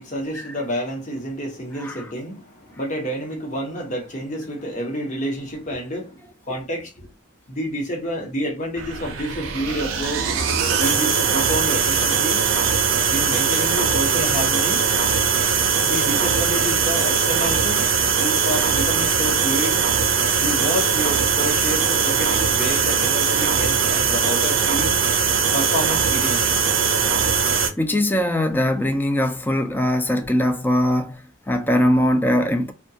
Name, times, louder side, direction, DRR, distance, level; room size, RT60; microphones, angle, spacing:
voice 1, 0.0-6.2 6.4-6.9 7.5-10.4 10.8-12.4 13.1-14.8 15.8-17.9 18.2-19.8 20.4-24.9 25.5-26.6, equal, 40° left, 0.9 m, -29 dB
sound 1, 8.8-27.7, right 6 dB, 85° right, 0.5 m, -20 dB
voice 2, 27.8-32.7, left 1 dB, 10° left, 0.3 m, -21 dB
2.3 x 2.2 x 2.7 m
head